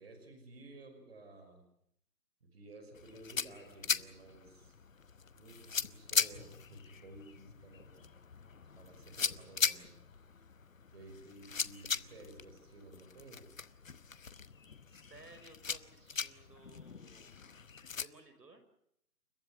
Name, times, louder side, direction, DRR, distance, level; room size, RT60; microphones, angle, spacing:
voice 1, 0.0-1.6 2.4-4.7 5.3-8.1 8.8-9.9 10.9-13.5, right 2 dB, 40° right, 6 dB, 5.7 m, -54 dB
sound 1, 2.9-18.1, left 6 dB, 55° left, 1.1 m, -39 dB
voice 2, 14.9-17.4 18.0-18.6, right 3 dB, 85° right, 8 dB, 5.6 m, -58 dB
29.5 x 13.5 x 9.8 m, 0.74 s
hypercardioid pair, 175°, 48 cm